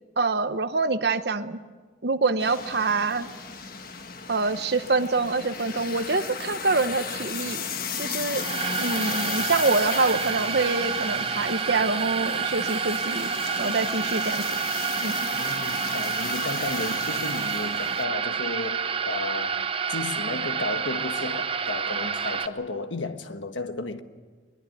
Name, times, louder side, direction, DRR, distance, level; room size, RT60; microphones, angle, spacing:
voice 1, 0.2-1.6 2.0-3.3 4.3-7.6 8.0-8.5 8.8-14.6 15.0-15.2, right 3 dB, 60° right, 1.0 m, -26 dB
sound 1, 2.4-18.0, left 6 dB, 50° left, 1.5 m, -35 dB
sound 2, 8.3-22.5, right 6 dB, 30° right, 0.7 m, -29 dB
voice 2, 15.4-24.0, left 2 dB, 90° left, 1.5 m, -33 dB
22.0 x 21.0 x 9.3 m
head